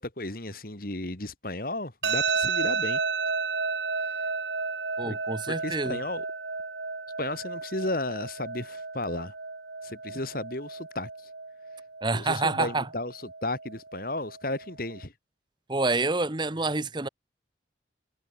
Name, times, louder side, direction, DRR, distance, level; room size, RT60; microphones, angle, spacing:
voice 1, 0.0-3.0 5.0-5.1 5.5-6.3 7.2-9.3 9.8-11.1 12.1-15.1, left 2 dB, 50° left, 2.8 m, -34 dB
sound 1, 2.0-15.0, right 4 dB, 70° right, 2.9 m, -33 dB
voice 2, 5.0-6.0 12.0-12.9 15.7-17.1, right 3 dB, 25° right, 1.0 m, -27 dB
head